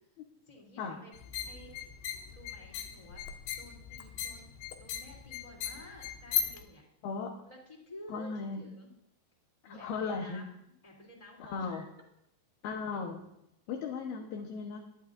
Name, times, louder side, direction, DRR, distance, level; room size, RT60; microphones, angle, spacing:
voice 1, 0.5-1.8 2.3-3.2 3.6-6.8 7.4-8.9 9.6-11.9, left 1 dB, 10° left, -2 dB, 2.5 m, -52 dB
sound 1, 1.1-6.6, left 9 dB, 90° left, 3.3 m, -38 dB
voice 2, 8.1-8.6 9.6-10.4 11.4-11.8 12.6-13.2 13.7-14.8, left 5 dB, 70° left, 2 dB, 3.0 m, -36 dB
23.0 x 11.5 x 2.7 m, 0.79 s
omnidirectional pair, 4.9 m